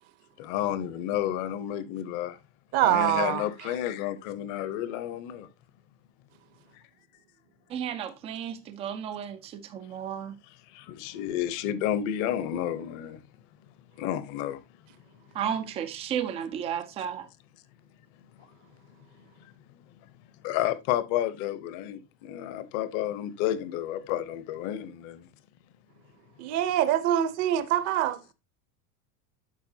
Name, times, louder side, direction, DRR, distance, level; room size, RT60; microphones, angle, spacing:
voice 1, 0.4-2.4 2.7-5.5 10.7-13.2 14.0-14.6 20.4-25.3, left 11 dB, 45° left, 0.9 m, -31 dB
voice 2, 2.7-3.4 26.4-28.2, right 12 dB, 35° right, 0.7 m, -24 dB
voice 3, 7.7-10.3 15.3-17.3, right 8 dB, 15° right, 0.3 m, -33 dB
12.5 x 4.7 x 2.7 m
supercardioid pair, 170°, 44 cm